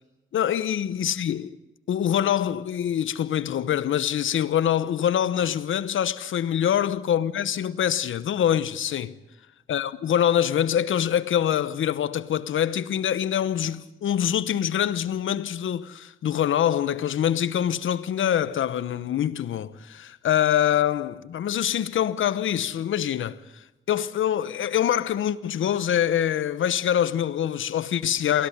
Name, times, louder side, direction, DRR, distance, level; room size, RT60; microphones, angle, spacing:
voice 1, 0.3-1.5 1.9-9.1 9.7-23.4 23.9-28.5, left 10 dB, 90° left, 1.0 m, -24 dB
23.5 x 16.0 x 9.9 m
cardioid pair, 70°, 20 cm